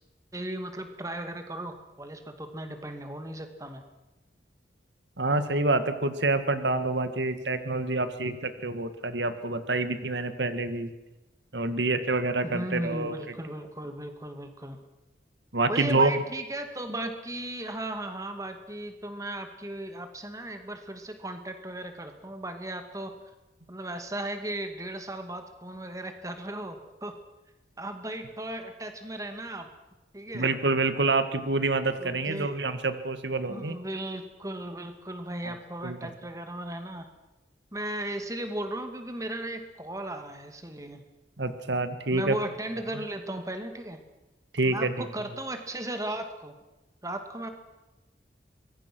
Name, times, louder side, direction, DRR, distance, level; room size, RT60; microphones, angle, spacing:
voice 1, 0.3-3.8 12.4-14.8 15.7-23.1 23.7-27.1 27.8-29.7 30.1-30.5 32.0-32.6 33.5-37.1 37.7-41.0 42.1-44.0 44.6-46.5 47.0-47.5, right 1 dB, 20° right, 6 dB, 2.2 m, -36 dB
voice 2, 5.2-10.9 11.5-13.1 15.5-16.1 30.3-33.8 35.4-35.5 35.8-36.0 41.4-42.4 44.5-44.9, right 2 dB, 90° right, 10 dB, 1.8 m, -27 dB
25.0 x 22.0 x 6.2 m, 1.0 s
head